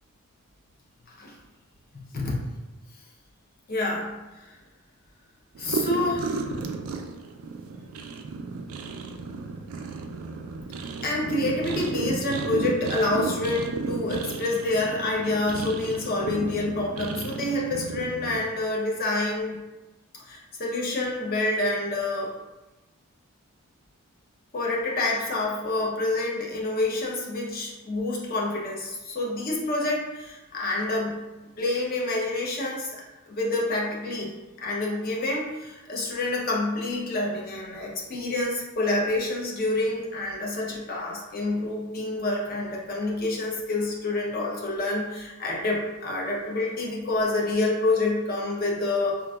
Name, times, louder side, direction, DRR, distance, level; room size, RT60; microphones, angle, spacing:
voice 1, 3.7-4.1 4.4-4.6 5.6-6.4 11.0-19.6 20.2-22.3 24.5-33.0 33.3-34.3 34.6-49.2, left 2 dB, 40° left, -2 dB, 0.6 m, -28 dB
sound 1, 5.5-18.4, right 4 dB, 75° right, 0.3 m, -33 dB
3.8 x 2.4 x 2.3 m, 1.1 s
head